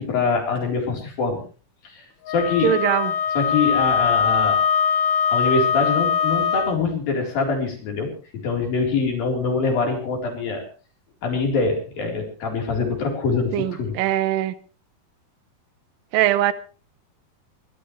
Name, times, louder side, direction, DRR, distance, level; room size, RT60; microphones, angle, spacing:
voice 1, 0.0-1.4 1.8-2.8 3.4-4.6 5.3-10.6 11.2-14.0, left 4 dB, 70° left, 5.9 m, -24 dB
Wind instrument woodwind instrument, 2.3-6.8, left 7 dB, 90° left, 3.4 m, -21 dB
voice 2, 2.6-3.1 13.5-14.5 16.1-16.5, right 12 dB, 75° right, 2.6 m, -21 dB
23.0 x 17.5 x 3.3 m
omnidirectional pair, 4.2 m